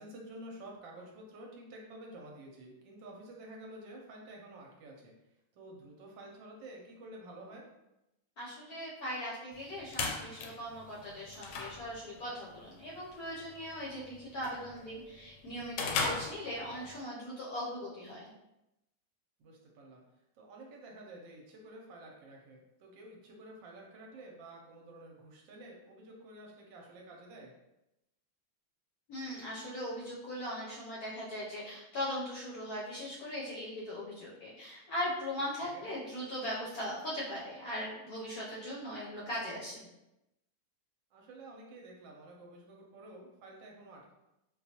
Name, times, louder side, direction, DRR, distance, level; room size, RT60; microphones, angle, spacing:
voice 1, 0.0-5.1 5.5-7.7 16.6-16.9 19.4-20.0 20.3-27.5 35.6-35.9 41.1-44.1, right 1 dB, 75° right, -1 dB, 1.3 m, -50 dB
voice 2, 8.4-18.3 29.1-39.9, equal, 65° left, -5 dB, 0.9 m, -39 dB
sound 1, 9.5-17.0, left 4 dB, 80° left, 1.4 m, -40 dB
4.2 x 2.3 x 2.8 m, 0.91 s
omnidirectional pair, 2.2 m